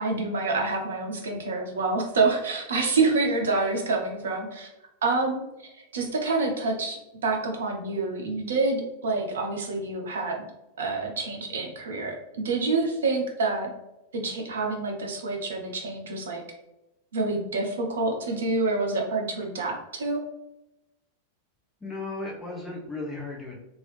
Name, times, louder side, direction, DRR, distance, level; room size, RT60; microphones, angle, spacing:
voice 1, 0.0-4.7 5.0-5.4 5.7-10.4 10.8-13.7 14.1-16.4 17.1-20.2, right 3 dB, 65° right, 2 dB, 0.7 m, -27 dB
voice 2, 21.8-23.6, left 2 dB, 15° left, -2 dB, 0.8 m, -35 dB
3.0 x 2.7 x 3.2 m, 0.91 s
figure-of-eight pair, 90°, 0 cm